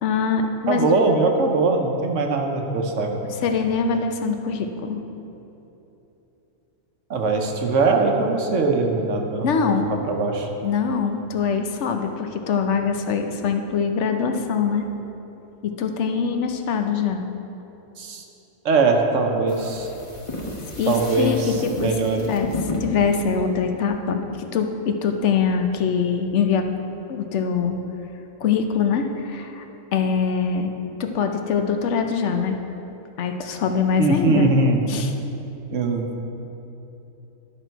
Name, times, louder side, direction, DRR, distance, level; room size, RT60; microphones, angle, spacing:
voice 1, 0.0-0.9 3.4-5.0 9.4-9.9 10.6-14.8 15.6-17.2 20.8-21.9 22.2-22.5 22.8-26.7 27.1-27.8 28.4-29.7 29.9-30.7 31.0-32.6 33.2-34.5 34.9-35.1, left 6 dB, 65° left, 6 dB, 1.0 m, -23 dB
voice 2, 0.7-3.2 7.1-9.7 10.1-10.5 18.0-18.2 18.6-19.9 20.9-22.3 34.0-34.8 35.7-36.1, right 3 dB, 65° right, 2 dB, 1.2 m, -21 dB
sound 1, 19.5-24.3, left 2 dB, 25° left, 0.9 m, -33 dB
11.5 x 6.1 x 4.5 m, 3.0 s
omnidirectional pair, 1.4 m